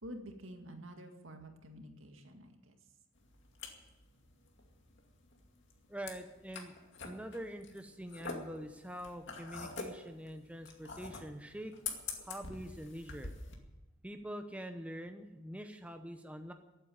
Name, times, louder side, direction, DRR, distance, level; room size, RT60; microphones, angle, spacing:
voice 1, 0.0-2.7, equal, 70° right, 4 dB, 2.1 m, -49 dB
sound 1, 3.1-13.5, left 4 dB, 60° left, 2.3 m, -46 dB
voice 2, 5.9-6.7 7.0-11.7 12.2-13.3 14.0-16.5, equal, 5° right, 6 dB, 0.8 m, -45 dB
15.0 x 8.9 x 9.4 m, 1.0 s
head